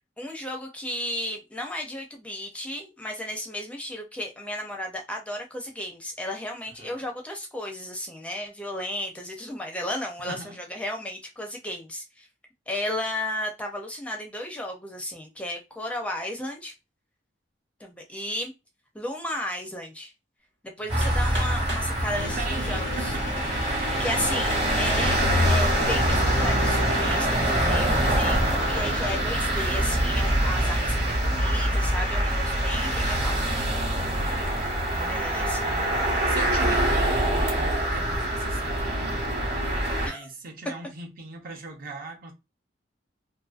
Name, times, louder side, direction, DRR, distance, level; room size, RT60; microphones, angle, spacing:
voice 1, 0.2-12.3 12.7-16.7 17.8-18.5 18.9-20.1 20.6-23.1 23.7-24.5 24.8-25.2 25.5-33.4 35.1-35.7 40.0-40.3, left 1 dB, 5° left, 0.5 m, -34 dB
voice 2, 10.3-10.6 20.8-21.2 22.1-23.3 23.7-23.9 34.1-34.7 34.9-42.3, right 4 dB, 55° right, 0.7 m, -40 dB
sound 1, 20.9-40.1, right 1 dB, 35° right, 1.0 m, -24 dB
Hammer, 21.0-21.9 22.8-22.9 23.5-23.6 24.5-25.1 25.7-26.1, right 1 dB, 80° right, 1.0 m, -37 dB
sound 2, 22.2-29.2, left 5 dB, 80° left, 0.4 m, -36 dB
2.6 x 2.5 x 2.3 m
head